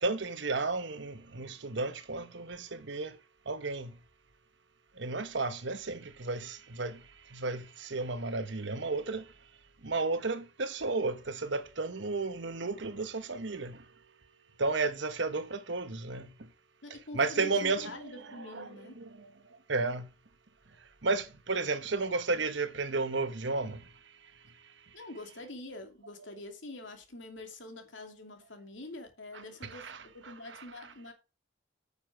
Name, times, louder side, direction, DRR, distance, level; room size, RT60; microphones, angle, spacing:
voice 1, 0.0-3.1 3.5-3.9 5.0-7.0 7.3-9.2 9.8-13.8 14.6-16.3 17.1-19.3 19.7-20.1 21.0-23.8 29.3-30.6, right 3 dB, 65° right, 1.1 m, -33 dB
voice 2, 16.8-19.0 24.9-29.9 30.1-31.1, left 2 dB, 75° left, 2.6 m, -45 dB
9.1 x 7.0 x 4.7 m
head